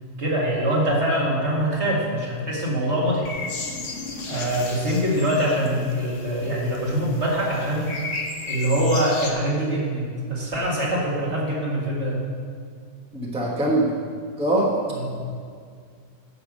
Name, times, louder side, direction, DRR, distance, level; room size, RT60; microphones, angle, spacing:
voice 1, 0.2-3.4 4.3-8.0 8.5-12.2 14.9-15.2, right 1 dB, 45° right, -4 dB, 2.3 m, -24 dB
sound 1, 3.2-9.3, left 3 dB, 55° left, 1.3 m, -35 dB
voice 2, 13.1-13.9 14.4-14.8, right 1 dB, 5° right, -3 dB, 1.1 m, -22 dB
10.5 x 5.8 x 7.5 m, 2.1 s
omnidirectional pair, 1.6 m